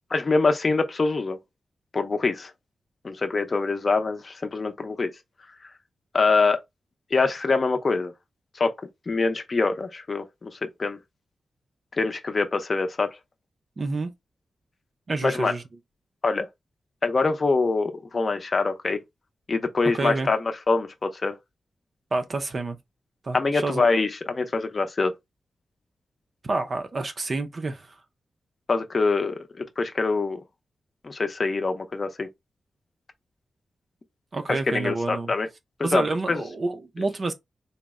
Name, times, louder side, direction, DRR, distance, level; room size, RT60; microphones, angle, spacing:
voice 1, 0.1-1.4 1.9-2.5 3.0-5.1 6.1-6.6 7.1-8.1 8.6-8.7 9.1-11.0 12.0-13.1 15.2-15.5 16.2-16.5 17.0-19.0 19.5-20.4 20.7-21.3 23.3-25.1 28.7-30.4 31.0-32.3 34.5-35.5 35.8-36.0 36.3-36.4, left 3 dB, 35° left, 0.6 m, -24 dB
voice 2, 13.8-14.1 15.1-15.6 19.9-20.3 22.1-22.8 23.2-23.9 26.4-28.0 34.3-35.3 35.8-37.3, right 3 dB, 35° right, 0.4 m, -28 dB
4.0 x 2.1 x 3.5 m
wide cardioid pair, 160°, 0 cm